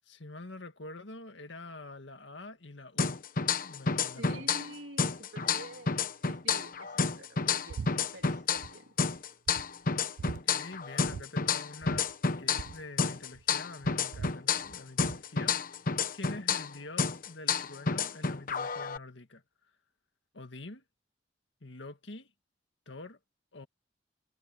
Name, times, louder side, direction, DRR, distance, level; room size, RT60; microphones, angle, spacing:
voice 1, 0.1-3.2 3.6-4.5 10.2-12.1 12.4-15.7 16.1-19.4 20.3-20.8 21.6-22.3 22.9-23.2 23.5-23.7, left 2 dB, 80° left, 1.9 m, -46 dB
sound 1, 3.0-4.7 5.0-8.7 9.0-12.7 13.0-16.7 17.0-19.0, left 5 dB, 50° left, 1.0 m, -30 dB
voice 2, 4.2-7.8 8.1-8.9, right 2 dB, 90° right, 3.5 m, -48 dB
sound 2, 7.7-7.9 8.2-8.7 9.1-9.2 9.5-10.4 11.0-11.3 11.5-11.6 11.8-13.5 13.8-15.2, right 5 dB, 75° right, 0.4 m, -42 dB
head